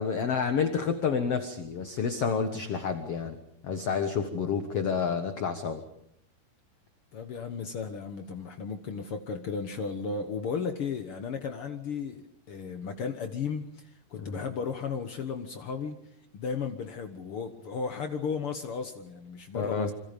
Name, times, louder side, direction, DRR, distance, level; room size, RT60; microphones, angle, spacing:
voice 1, 0.0-3.4 3.6-5.8 14.2-14.5 19.5-19.9, left 6 dB, 55° left, 8 dB, 1.8 m, -29 dB
voice 2, 7.1-16.0 16.3-19.9, left 5 dB, 85° left, 7 dB, 1.2 m, -35 dB
27.5 x 26.0 x 5.3 m, 0.75 s
omnidirectional pair, 4.6 m